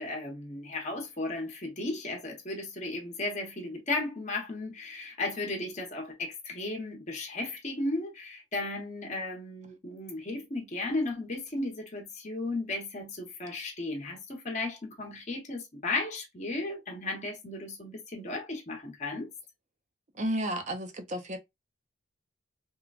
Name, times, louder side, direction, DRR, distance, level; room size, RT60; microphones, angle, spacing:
voice 1, 0.0-19.3, left 2 dB, 35° left, 0.9 m, -35 dB
voice 2, 20.1-21.4, right 1 dB, 35° right, 0.5 m, -32 dB
3.1 x 2.1 x 2.3 m
head